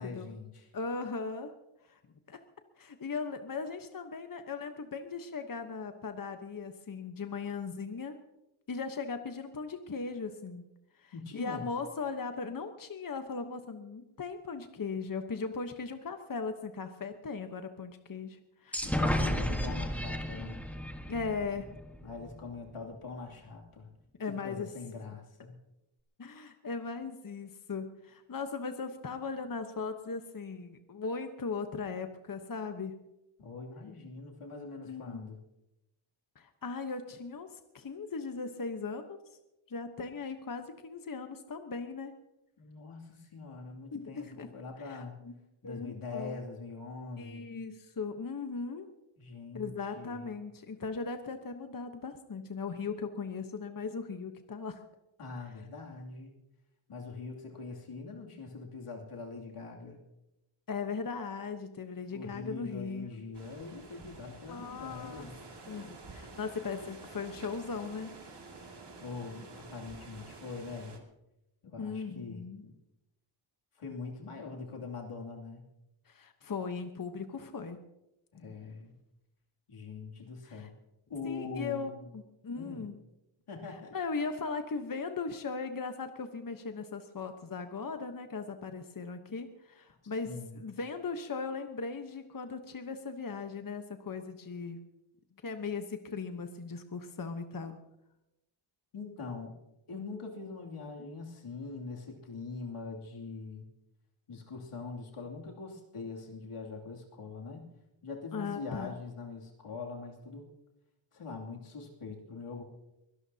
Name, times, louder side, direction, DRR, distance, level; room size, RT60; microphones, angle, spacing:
voice 1, 0.0-0.7 11.1-11.7 18.9-20.6 22.0-23.9 24.4-25.5 33.4-35.4 42.6-45.2 45.6-47.5 49.2-50.3 55.2-56.3 56.9-60.0 62.1-65.4 69.0-71.0 71.6-72.7 73.8-75.6 78.3-78.9 79.7-80.7 81.1-82.0 82.5-82.9 83.5-83.9 90.0-90.6 98.9-99.5 99.9-103.7 104.3-107.7 108.0-110.5 111.1-112.6, left 4 dB, 85° left, -1 dB, 2.8 m, -43 dB
voice 2, 0.7-1.5 1.8-2.0 2.3-2.4 2.8-8.2 8.7-10.6 10.9-19.0 21.1-21.7 24.2-24.7 26.2-33.0 34.8-35.3 36.4-39.2 39.7-42.1 43.9-44.5 44.8-45.4 45.6-46.4 47.2-48.9 49.5-54.8 60.7-63.1 64.5-65.3 65.7-68.1 71.8-72.6 76.1-77.8 80.4-80.7 81.2-82.9 83.9-94.8 95.4-97.8 108.3-108.9, left 4 dB, 40° left, 7 dB, 1.1 m, -38 dB
sound 1, 18.7-22.4, equal, 5° left, 1.4 m, -33 dB
sound 2, 63.3-71.0, right 3 dB, 55° right, 2.4 m, -50 dB
23.5 x 17.5 x 2.8 m, 0.91 s
wide cardioid pair, 85°, 50 cm